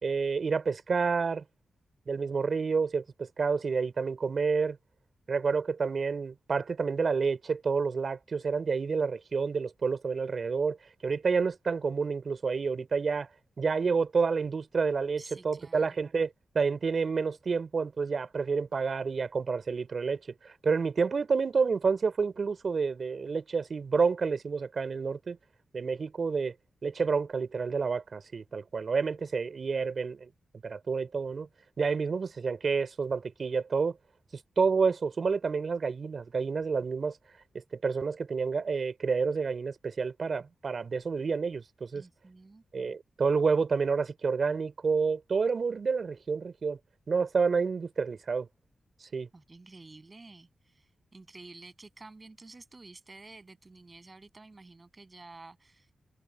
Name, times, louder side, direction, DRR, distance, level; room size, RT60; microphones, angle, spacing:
voice 1, 0.0-1.4 2.1-4.8 5.3-10.8 11.0-13.3 13.6-25.4 25.7-26.5 26.8-30.3 30.6-31.5 31.8-34.0 34.6-37.2 37.8-42.0 42.7-46.8 47.1-48.5 49.0-49.3, right 5 dB, 60° right, 3.6 m, -29 dB
voice 2, 15.2-16.0 41.9-42.6 49.3-55.9, right 3 dB, 40° right, 7.9 m, -51 dB
supercardioid pair, 40°, 0 cm